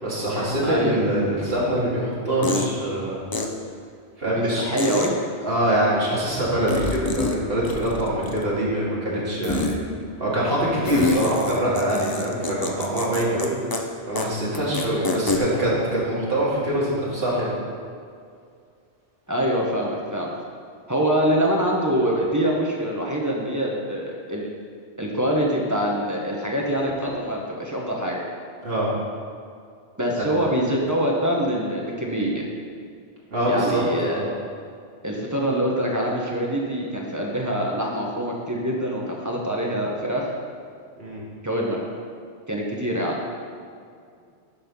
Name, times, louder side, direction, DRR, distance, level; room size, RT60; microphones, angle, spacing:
voice 1, 0.0-3.2 4.2-4.7 5.4-9.8 10.2-13.5 14.1-17.5 28.6-28.9 30.2-30.3 33.3-34.2 41.0-41.2, right 1 dB, 60° right, -7 dB, 2.4 m, -24 dB
voice 2, 0.6-1.0 4.5-5.1 19.3-20.3 20.9-24.5 25.0-28.2 30.0-32.5 33.5-34.2 35.0-40.2 41.4-41.8 42.5-43.2, equal, 15° right, -2 dB, 1.1 m, -24 dB
sound 1, 2.4-2.7 3.3-3.4 4.8-5.1 6.7-7.4 7.6-8.5 9.4-9.8 10.8-13.5 13.7-13.8 14.2-14.3 14.5-15.4, left 3 dB, 30° left, 0.5 m, -26 dB
11.0 x 4.3 x 5.4 m, 2.3 s
omnidirectional pair, 1.1 m